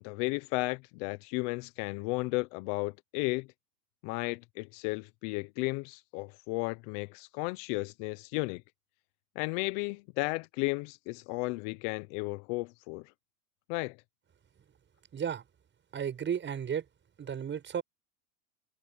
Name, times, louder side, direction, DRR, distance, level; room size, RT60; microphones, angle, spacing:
voice 1, 0.0-3.5 4.0-8.6 9.3-13.1 13.7-14.0, left 26 dB, 55° left, 1.1 m, -34 dB
voice 2, 15.1-15.4 15.9-16.8 17.2-17.8, right 8 dB, 25° right, 7.6 m, -33 dB
hypercardioid pair, 115°, 44 cm